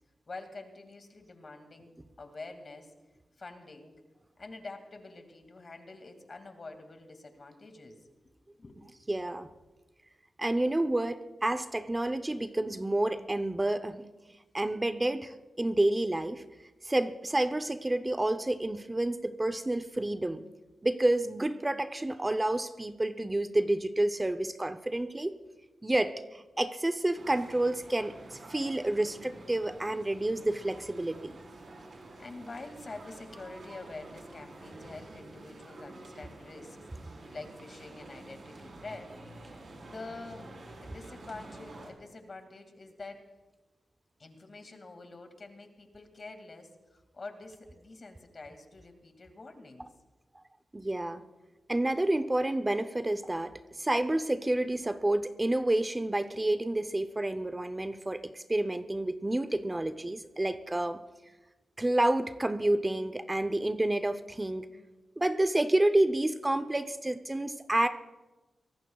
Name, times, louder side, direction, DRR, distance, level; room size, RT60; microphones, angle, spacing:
voice 1, 0.3-2.9 3.4-4.0 4.4-8.1 8.6-8.8 32.2-39.2 39.4-40.5 40.7-43.2 44.2-49.9, left 3 dB, 50° left, 6 dB, 2.2 m, -46 dB
voice 2, 9.1-9.5 10.4-14.1 14.5-16.4 16.8-20.4 20.8-25.4 25.8-31.4 50.7-51.2 51.7-61.0 61.8-64.7 65.2-67.9, right 1 dB, 20° right, 10 dB, 0.7 m, -29 dB
sound 1, 27.1-41.9, right 2 dB, 60° right, 4.0 m, -49 dB
24.0 x 18.0 x 2.4 m, 1.2 s
cardioid pair, 70°, 0 cm